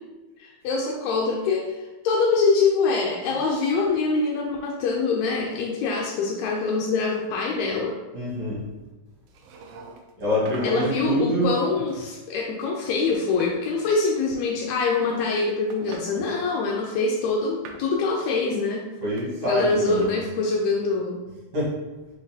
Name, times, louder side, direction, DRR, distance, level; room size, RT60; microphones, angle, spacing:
voice 1, 0.4-7.9 10.6-18.8 19.4-21.2, left 4 dB, 80° left, -2 dB, 1.7 m, -24 dB
voice 2, 8.1-8.6 10.2-11.5 16.1-16.2 19.0-20.1 21.5-21.7, equal, 55° right, -6 dB, 2.3 m, -25 dB
sound 1, 9.3-10.1 10.5-11.1 11.9-12.6 12.8-13.6 14.7-15.4 15.7-16.1 16.9-17.9 19.2-20.0, right 4 dB, 85° right, 1.4 m, -43 dB
4.7 x 3.8 x 2.7 m, 1.1 s
omnidirectional pair, 3.5 m